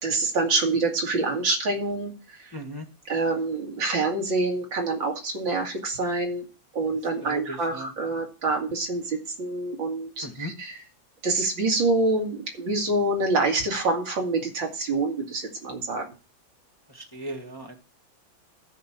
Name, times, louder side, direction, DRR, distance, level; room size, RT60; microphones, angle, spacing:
voice 1, 0.0-2.5 3.1-6.5 6.7-10.8 11.2-16.0, right 2 dB, 80° right, 1 dB, 3.2 m, -26 dB
voice 2, 2.5-2.9 7.2-7.9 10.2-10.5 16.9-17.8, equal, 15° left, 3 dB, 1.3 m, -37 dB
12.0 x 5.3 x 7.3 m, 0.33 s
omnidirectional pair, 2.1 m